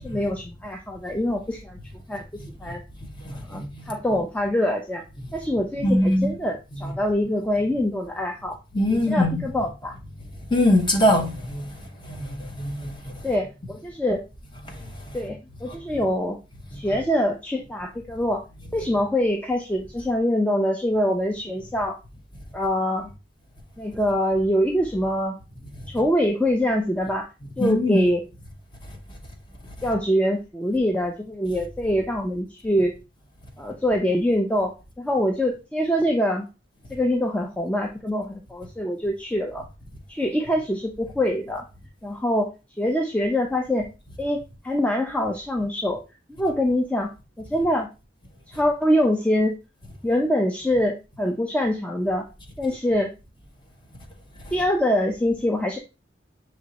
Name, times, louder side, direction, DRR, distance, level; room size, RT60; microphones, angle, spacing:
voice 1, 0.0-1.8 2.1-2.8 3.5-5.0 5.3-8.6 8.9-10.0 13.2-14.2 15.1-16.4 16.7-18.4 18.7-22.0 22.5-23.1 23.8-25.4 25.9-27.3 27.6-28.2 29.8-32.9 33.6-36.5 36.9-39.6 40.1-41.6 42.0-42.5 42.8-43.9 44.2-44.4 44.6-46.0 46.4-47.1 47.4-47.9 48.5-49.5 50.0-52.2 52.6-53.1 54.5-55.8, equal, 5° left, 0.4 m, -24 dB
voice 2, 3.2-3.9 5.8-6.3 8.7-9.4 10.5-11.6 12.1-12.9 27.6-28.0, left 1 dB, 25° left, 0.8 m, -22 dB
6.1 x 3.0 x 2.8 m
head